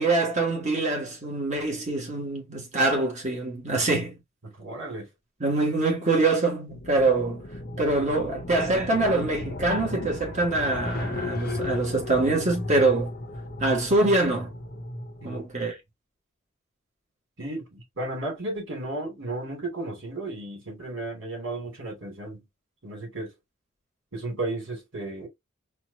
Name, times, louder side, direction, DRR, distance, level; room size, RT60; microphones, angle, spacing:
voice 1, 0.0-4.2 5.4-7.4 7.8-13.1 13.6-14.5 15.2-15.8, right 2 dB, 35° right, 1.7 m, -24 dB
voice 2, 4.4-5.1 15.2-15.4 17.4-22.4 22.8-23.3 24.1-25.3, right 2 dB, 70° right, 2.8 m, -34 dB
sound 1, 6.7-15.5, left 2 dB, 50° left, 0.9 m, -35 dB
4.3 x 2.6 x 2.8 m
head